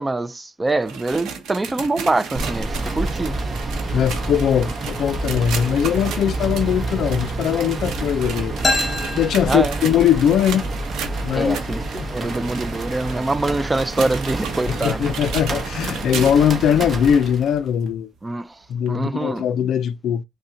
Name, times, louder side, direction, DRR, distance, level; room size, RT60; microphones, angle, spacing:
voice 1, 0.0-3.4 9.5-9.8 11.3-15.0 18.2-18.5 18.9-19.4, right 2 dB, 20° right, 0.3 m, -24 dB
sound 1, 0.7-16.5 17.0-17.1 17.9-18.0 18.9-19.0, right 6 dB, 90° right, 0.7 m, -34 dB
sound 2, 2.3-17.7, right 2 dB, 40° right, 0.8 m, -28 dB
voice 2, 3.9-8.5 9.1-10.7 11.2-11.6 12.0-12.3 14.7-18.1 18.7-20.2, left 9 dB, 75° left, 0.3 m, -20 dB
sound 3, 8.6-10.3, left 2 dB, 25° left, 1.1 m, -26 dB
5.3 x 2.1 x 2.6 m
cardioid pair, 105°, 0 cm